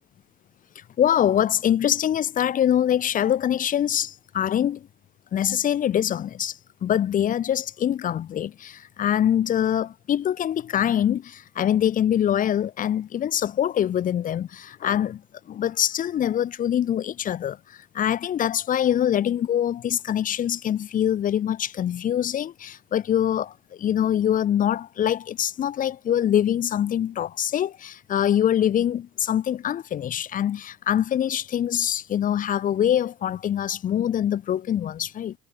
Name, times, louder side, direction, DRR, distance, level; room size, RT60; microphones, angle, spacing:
voice 1, 0.7-4.9 5.3-15.2 15.5-35.4, left 10 dB, 50° left, 4.7 m, -24 dB
cardioid pair, 105°, 18 cm